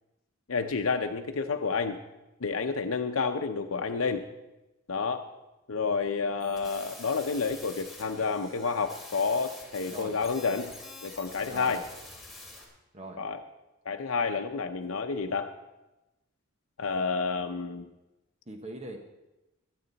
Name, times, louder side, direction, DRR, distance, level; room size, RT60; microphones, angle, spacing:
voice 1, 0.5-2.0 2.4-4.2 4.9-5.2 5.7-10.7 11.0-11.8 13.2-13.4 13.9-15.5 16.8-17.9, left 5 dB, 80° left, 5 dB, 0.7 m, -30 dB
sound 1, 6.4-12.6, left 2 dB, ahead, 2.8 m, -47 dB
voice 2, 11.5-11.8 12.9-13.2 18.5-19.0, right 2 dB, 30° right, 4 dB, 1.1 m, -41 dB
21.5 x 8.8 x 4.1 m, 1.0 s
head